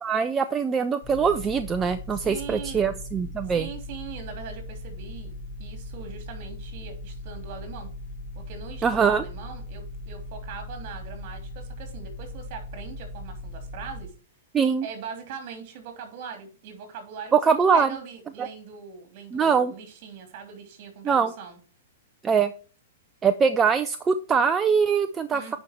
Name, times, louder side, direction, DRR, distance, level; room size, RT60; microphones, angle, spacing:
voice 1, 0.0-3.7 8.8-9.2 14.5-14.9 17.3-17.9 18.4-18.5 19.3-19.7 21.0-21.3 22.2-22.5 23.2-25.6, right 6 dB, 20° right, 9 dB, 0.5 m, -22 dB
sound 1, 1.0-14.1, left 2 dB, 55° left, 2.6 m, -39 dB
voice 2, 2.1-3.0 3.5-7.9 8.3-14.1 14.8-21.6 25.3-25.6, right 6 dB, 45° right, 5 dB, 3.2 m, -41 dB
9.5 x 5.4 x 4.5 m, 0.39 s
hypercardioid pair, 120°, 0 cm